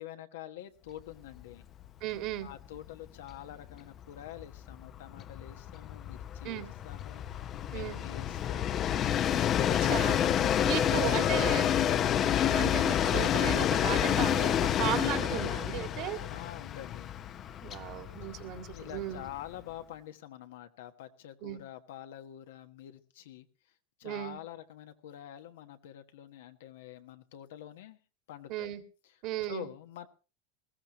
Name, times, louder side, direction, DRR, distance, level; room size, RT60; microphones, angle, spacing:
voice 1, 0.0-1.6 2.4-8.9 16.3-17.1 18.2-18.3 18.7-23.5 24.0-28.0 28.3-28.7 29.5-30.1, left 11 dB, 80° left, 8 dB, 1.3 m, -47 dB
Train, 1.3-1.5 1.8-1.9 2.2-19.6, left 10 dB, 35° left, 0.7 m, -29 dB
voice 2, 2.0-2.5 6.4-6.7 7.7-8.0 9.8-10.2 10.6-16.2 17.6-19.2 21.4-21.6 24.0-24.4 28.5-28.8 29.2-29.7, right 13 dB, 55° right, 7 dB, 2.1 m, -36 dB
20.0 x 15.0 x 3.0 m, 0.33 s
supercardioid pair, 125°, 0 cm